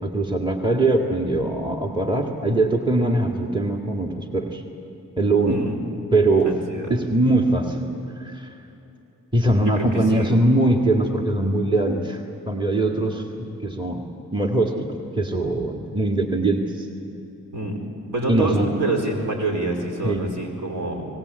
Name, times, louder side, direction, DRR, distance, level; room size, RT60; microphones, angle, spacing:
voice 1, 0.0-4.6 5.2-5.7 6.1-6.6 6.9-7.9 8.2-8.5 9.3-12.2 12.5-13.3 13.6-14.0 14.3-16.9 18.3-18.8 20.0-20.3, right 2 dB, 15° right, 2 dB, 2.2 m, -21 dB
voice 2, 6.4-6.9 9.6-10.4 17.5-17.8 18.1-21.1, right 2 dB, 60° right, 1 dB, 5.1 m, -27 dB
25.0 x 19.0 x 8.3 m, 3.0 s
supercardioid pair, 40°, 35 cm